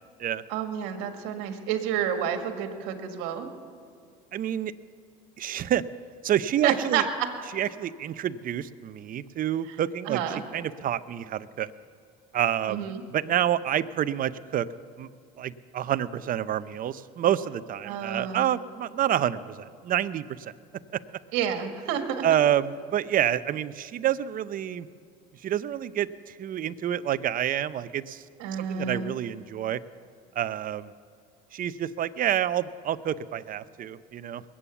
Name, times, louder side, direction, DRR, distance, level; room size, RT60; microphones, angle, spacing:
voice 1, 0.5-3.5 6.6-7.0 10.1-10.4 12.7-13.0 17.8-18.5 21.3-22.2 28.4-29.2, right 8 dB, 75° right, 6 dB, 1.7 m, -29 dB
voice 2, 4.3-4.7 5.4-5.8 6.2-7.1 7.5-10.2 10.5-11.7 12.3-14.7 15.0-15.1 15.4-20.5 20.9-21.0 22.2-24.9 25.4-28.2 28.6-29.8 30.4-30.9 31.5-34.4, right 11 dB, 45° right, 14 dB, 0.6 m, -28 dB
21.0 x 8.7 x 7.0 m, 2.3 s
supercardioid pair, 85°, 20 cm